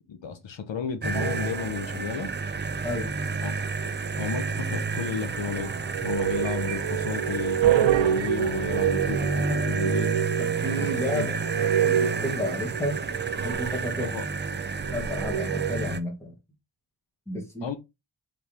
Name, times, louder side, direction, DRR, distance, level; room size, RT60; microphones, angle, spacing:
voice 1, 0.1-2.3 3.4-3.5 4.2-5.7 6.0-10.2 10.8-11.4 14.0-14.3 17.6-17.8, left 6 dB, 65° left, 0.7 m, -33 dB
sound 1, 1.0-16.0, right 4 dB, 25° right, 0.3 m, -30 dB
sound 2, 1.1-1.9 3.6-4.5 5.3-15.8, right 10 dB, 70° right, 0.6 m, -28 dB
voice 2, 10.4-13.0 13.4-14.1 14.9-16.3 17.3-17.7, left 1 dB, 5° left, 1.3 m, -32 dB
4.9 x 3.4 x 2.8 m
wide cardioid pair, 140°, 48 cm